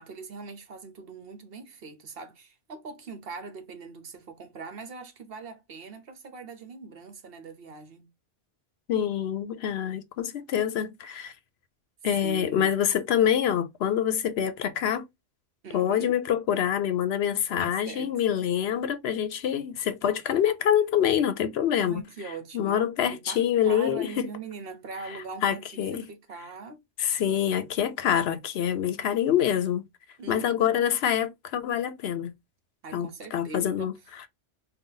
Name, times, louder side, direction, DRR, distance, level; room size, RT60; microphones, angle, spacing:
voice 1, 0.0-8.1 12.2-12.7 15.6-16.1 17.6-18.1 21.8-25.8 26.1-26.8 30.2-30.8 32.8-33.9, right 4 dB, 60° right, 1.0 m, -42 dB
voice 2, 8.9-11.3 12.0-15.1 15.7-22.0 22.5-24.3 25.1-25.2 25.4-26.1 27.0-29.8 30.3-32.3 32.9-33.9, left 9 dB, 70° left, 0.8 m, -26 dB
3.8 x 2.3 x 3.8 m
omnidirectional pair, 1.2 m